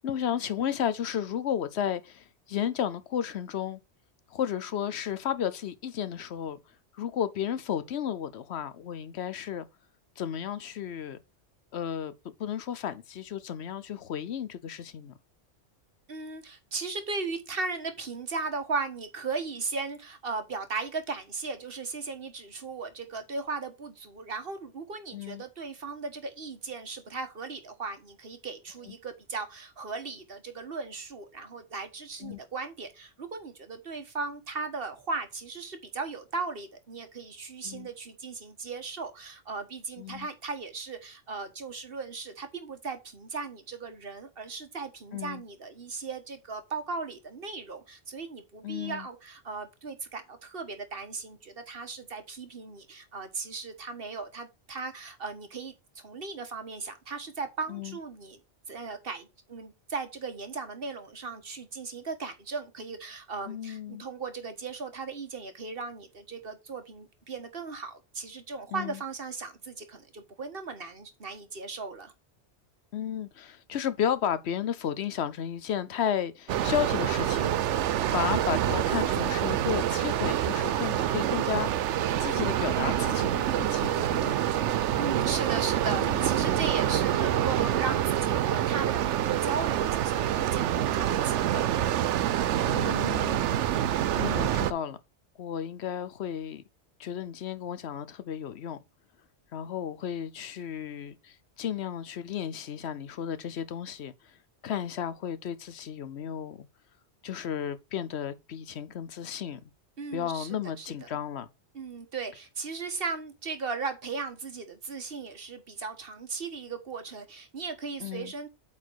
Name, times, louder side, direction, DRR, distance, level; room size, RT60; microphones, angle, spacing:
voice 1, 0.0-3.8 4.3-6.6 6.9-9.7 10.2-11.2 11.7-12.1 12.4-15.1 25.1-25.4 32.2-32.4 37.6-37.9 40.0-40.3 45.1-45.4 48.6-49.1 57.7-58.0 63.5-64.0 68.7-69.0 72.9-77.5 78.1-84.4 85.9-86.6 92.6-95.0 95.4-96.6 97.0-98.8 99.5-104.4 104.6-106.7 107.2-109.7 110.1-111.5 118.0-118.3, left 9 dB, 70° left, 0.9 m, -33 dB
voice 2, 16.1-58.4 58.7-72.1 85.0-91.7 110.0-110.9 111.7-118.5, right 4 dB, 55° right, 1.5 m, -37 dB
sound 1, 76.5-94.7, right 11 dB, 85° right, 0.9 m, -27 dB
8.6 x 4.2 x 4.6 m
omnidirectional pair, 1.2 m